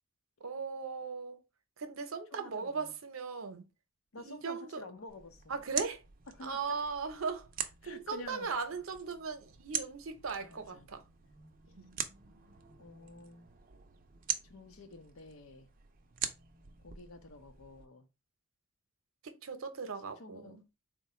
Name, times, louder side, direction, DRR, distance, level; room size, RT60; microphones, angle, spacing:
voice 1, 0.4-1.4 1.8-3.7 4.2-4.8 5.5-6.0 6.4-7.5 7.8-11.0 11.8-11.9 19.2-20.6, right 5 dB, 80° right, 0.7 m, -38 dB
voice 2, 2.3-2.9 4.1-5.6 6.3-6.8 7.8-8.5 10.4-10.9 12.8-13.5 14.4-15.7 16.8-18.0 20.2-20.6, left 2 dB, 85° left, 0.7 m, -50 dB
sound 1, 5.1-17.9, right 9 dB, 40° right, 0.4 m, -43 dB
3.8 x 2.2 x 4.2 m
head